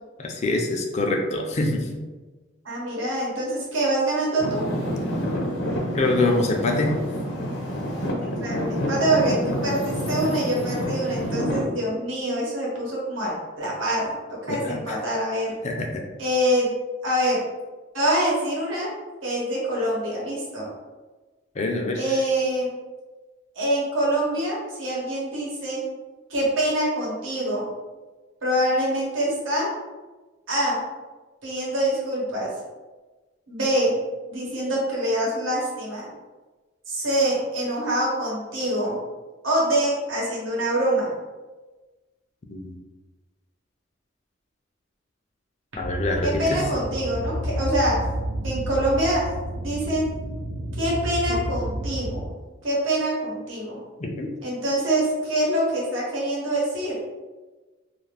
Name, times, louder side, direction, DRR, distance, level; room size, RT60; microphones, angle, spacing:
voice 1, 0.2-2.0 5.9-6.9 14.5-15.0 15.6-16.0 21.6-22.0 42.5-42.8 45.8-46.6 51.3-51.4 54.0-54.3, left 2 dB, 35° left, 1 dB, 0.4 m, -25 dB
voice 2, 2.6-4.6 8.4-14.1 14.5-15.5 16.2-16.7 17.0-17.4 17.9-18.9 19.2-20.7 22.0-22.7 23.5-25.8 26.3-27.7 28.4-29.7 30.5-30.8 31.4-32.5 33.5-33.9 34.3-36.1 36.9-39.0 39.4-41.1 46.2-48.0 48.4-49.2 49.5-50.1 50.8-52.4 52.6-53.8 54.4-57.0, right 1 dB, 85° right, -5 dB, 1.1 m, -25 dB
Traffic noise roadway noise / Engine, 4.4-11.6, equal, 80° left, 0.8 m, -28 dB
sound 1, 45.8-52.3, right 1 dB, 50° right, 0.3 m, -30 dB
2.4 x 2.4 x 3.2 m, 1.2 s
head